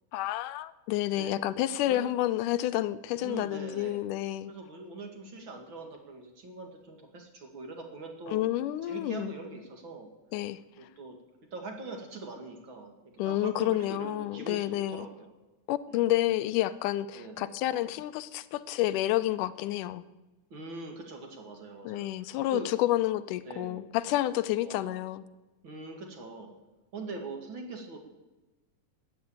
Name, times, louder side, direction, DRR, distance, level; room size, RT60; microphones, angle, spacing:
voice 1, 0.1-4.5 8.3-9.3 10.3-10.6 13.2-15.1 15.7-20.0 21.9-25.2, left 14 dB, 80° left, 2.1 m, -29 dB
voice 2, 1.1-1.4 1.9-2.1 3.2-4.0 4.5-8.4 8.8-10.1 10.8-11.2 11.5-12.9 13.2-15.3 15.9-16.1 17.1-17.5 20.5-22.7 23.5-23.8 24.6-25.1 25.6-26.5 26.9-28.0, right 3 dB, 40° right, 2.5 m, -42 dB
13.0 x 9.5 x 8.6 m
omnidirectional pair, 3.7 m